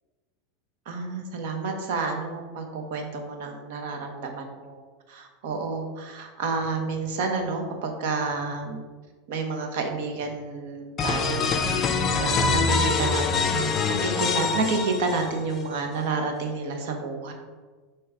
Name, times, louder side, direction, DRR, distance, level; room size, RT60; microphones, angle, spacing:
voice 1, 0.9-4.8 5.1-8.8 9.3-11.9 12.2-17.3, right 4 dB, 65° right, 3 dB, 1.1 m, -30 dB
sound 1, 11.0-15.6, left 4 dB, 30° left, 0.5 m, -24 dB
6.2 x 3.2 x 4.8 m, 1.4 s
supercardioid pair, 145°, 0 cm